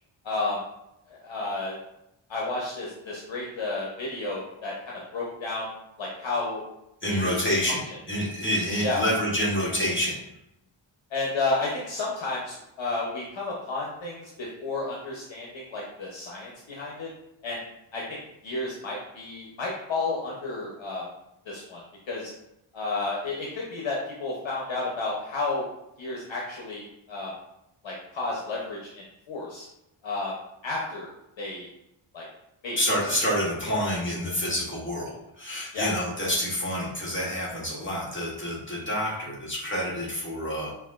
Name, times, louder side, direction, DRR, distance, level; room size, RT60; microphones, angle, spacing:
voice 1, 0.2-0.6 1.1-1.8 2.3-5.7 6.0-6.6 7.1-7.3 7.9-8.0 8.8-9.0 11.1-17.1 17.4-17.6 17.9-21.0 21.5-21.8 22.1-22.3 22.7-25.7 26.0-27.3 27.8-29.7 30.0-30.3 30.6-31.1 31.4-31.7 32.1-32.3 32.6-33.0 35.7-35.9, left 3 dB, 65° left, -3 dB, 0.8 m, -32 dB
voice 2, 7.0-10.2 32.8-40.8, equal, 25° left, -6 dB, 1.0 m, -28 dB
5.7 x 2.5 x 2.4 m, 0.83 s
wide cardioid pair, 165°, 50 cm